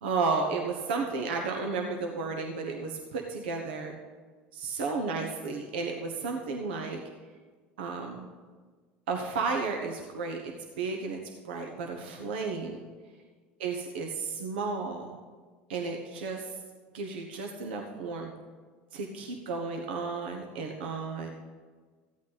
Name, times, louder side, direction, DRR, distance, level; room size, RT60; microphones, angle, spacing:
voice 1, 0.0-3.9 4.5-7.0 7.8-8.3 9.1-12.8 13.6-15.2 15.7-16.5 16.9-18.3 18.9-21.3, right 4 dB, 85° right, 2 dB, 1.2 m, -33 dB
14.5 x 8.6 x 4.1 m, 1.5 s
supercardioid pair, 95°, 5 cm